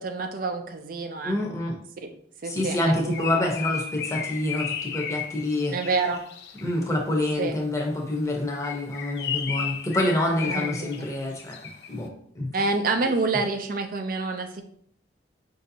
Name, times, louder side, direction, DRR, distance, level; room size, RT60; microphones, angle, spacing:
voice 1, 0.0-1.4 2.4-3.4 5.7-6.2 7.4-7.5 10.4-11.1 12.5-14.6, right 3 dB, 50° right, 6 dB, 0.4 m, -28 dB
voice 2, 1.2-1.7 2.4-5.7 6.6-11.6 11.9-12.7, left 1 dB, 15° left, -1 dB, 0.7 m, -27 dB
Bird, 2.7-6.8 8.4-12.0, left 7 dB, 60° left, 0.5 m, -34 dB
5.1 x 2.7 x 2.7 m, 0.64 s
head